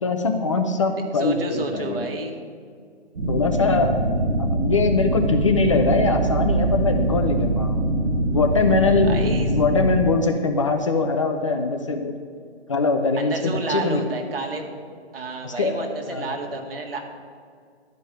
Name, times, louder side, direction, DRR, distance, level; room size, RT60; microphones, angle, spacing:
voice 1, 0.0-2.1 3.3-4.0 4.4-7.9 8.3-9.2 9.5-12.1 12.7-14.0 15.4-16.4, left 3 dB, 30° left, 5 dB, 0.6 m, -22 dB
voice 2, 1.1-2.4 9.1-9.5 13.2-14.7 15.1-17.0, right 3 dB, 55° right, 3 dB, 1.9 m, -30 dB
sound 1, 3.2-10.1, right 2 dB, 80° right, 2.3 m, -23 dB
12.0 x 5.3 x 8.9 m, 2.1 s
hypercardioid pair, 155°, 34 cm